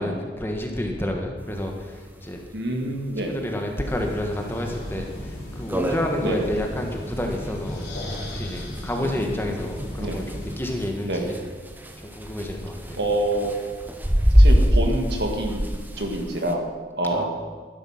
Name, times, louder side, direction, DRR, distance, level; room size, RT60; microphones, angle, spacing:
voice 1, 0.0-2.4 3.2-7.9 8.3-11.4 12.0-13.0 17.1-17.2, left 1 dB, 15° left, 2 dB, 1.5 m, -29 dB
sound 1, 1.5-1.6 1.8-1.9 2.3-2.4 3.0-3.2 3.7-3.8 4.3-4.4 4.7-4.8 5.2-5.3 5.5-16.5, equal, 10° right, 1.0 m, -24 dB
voice 2, 2.5-3.4 6.2-6.5 9.0-9.6 10.0-10.3 11.0-11.3 13.0-13.5 14.3-15.6 16.0-16.7 17.0-17.2, right 1 dB, 65° right, 2 dB, 2.0 m, -27 dB
sound 2, 3.8-10.6, left 1 dB, 70° left, 4.3 m, -35 dB
13.0 x 10.0 x 5.9 m, 1.5 s
head